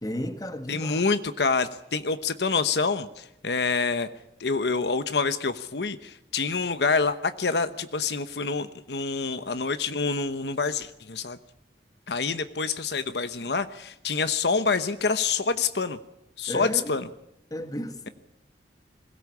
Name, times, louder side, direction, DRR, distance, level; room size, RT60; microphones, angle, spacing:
voice 1, 0.0-1.0 16.5-16.9 17.5-18.1, left 1 dB, 20° left, 1.6 m, -33 dB
voice 2, 0.7-4.1 4.4-11.4 12.1-16.0 16.4-17.0, left 4 dB, 75° left, 1.0 m, -27 dB
21.5 x 17.0 x 8.5 m
head